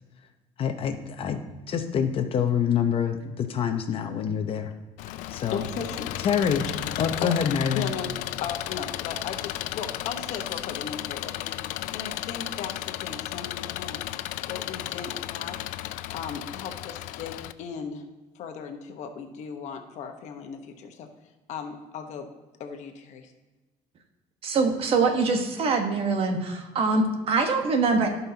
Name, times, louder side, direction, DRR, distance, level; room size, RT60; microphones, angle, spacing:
voice 1, 0.6-1.4 1.7-4.7 5.3-5.6 6.2-6.6 7.0-7.9, left 7 dB, 45° left, 7 dB, 0.8 m, -26 dB
Engine, 5.0-17.5, left 15 dB, 75° left, 0.4 m, -34 dB
voice 2, 5.5-6.1 6.7-6.8 7.2-14.0 14.5-15.6 16.1-18.0 18.3-21.1 21.5-22.3 22.6-23.3, left 6 dB, 60° left, 5 dB, 1.1 m, -37 dB
voice 3, 24.4-28.2, right 4 dB, 45° right, 5 dB, 1.2 m, -24 dB
16.0 x 5.5 x 2.8 m, 1.2 s
cardioid pair, 130°, 13 cm